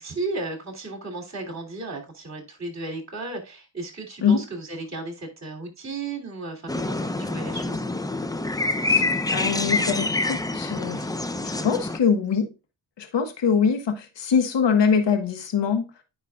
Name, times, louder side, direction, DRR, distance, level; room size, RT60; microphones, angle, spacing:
voice 1, 0.0-7.8, right 2 dB, 35° right, 3.0 m, -34 dB
sound 1, 6.7-12.0, left 2 dB, 10° left, 0.5 m, -26 dB
voice 2, 8.9-11.1 11.4-12.5 13.0-15.8, left 6 dB, 60° left, 1.4 m, -23 dB
9.5 x 5.5 x 2.4 m
cardioid pair, 75°, 50 cm